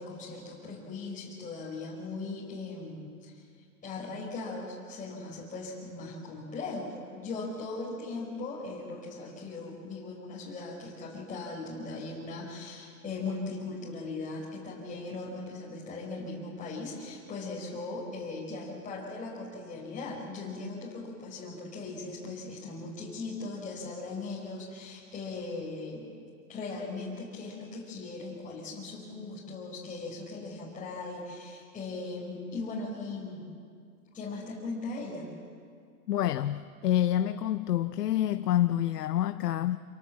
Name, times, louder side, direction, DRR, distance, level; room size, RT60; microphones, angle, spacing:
voice 1, 0.0-3.3 3.8-26.1 26.5-33.5 34.1-35.3, left 3 dB, 15° left, -5 dB, 4.5 m, -39 dB
voice 2, 36.1-39.8, left 12 dB, 85° left, 11 dB, 0.8 m, -27 dB
27.0 x 19.0 x 7.5 m, 2.2 s
hypercardioid pair, 120°, 46 cm